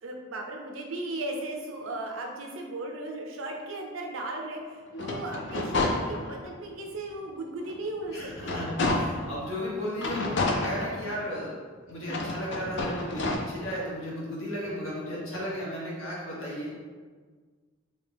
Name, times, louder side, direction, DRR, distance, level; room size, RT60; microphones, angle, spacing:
voice 1, 0.0-8.7, right 2 dB, 85° right, 2 dB, 0.6 m, -36 dB
sound 1, 4.9-6.6 7.1-7.2 7.6-9.4 10.0-11.4 12.0-13.4, left 2 dB, 60° left, 0.5 m, -30 dB
voice 2, 8.1-8.7 8.9-11.5 11.9-16.7, equal, 80° left, -6 dB, 1.3 m, -35 dB
3.3 x 2.9 x 3.3 m, 1.5 s
head